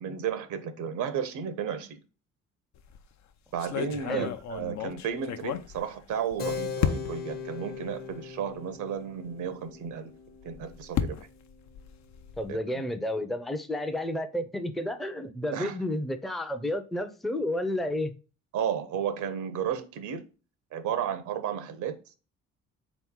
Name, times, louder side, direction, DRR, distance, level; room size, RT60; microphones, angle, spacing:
voice 1, 0.0-2.0 3.5-10.1 10.4-11.2 12.5-12.6 15.5-15.8 18.5-20.2 20.7-22.0, right 8 dB, 75° right, 0.7 m, -33 dB
sound 1, 2.7-3.1 3.6-6.3 6.8-7.4 8.1-8.2 8.5-8.6 10.3-12.6, left 9 dB, 65° left, 0.5 m, -33 dB
Keyboard (musical), 6.4-12.5, left 5 dB, 30° left, 0.7 m, -40 dB
voice 2, 12.4-18.1, left 1 dB, ahead, 0.5 m, -31 dB
3.7 x 3.0 x 3.6 m
cardioid pair, 90°, 30 cm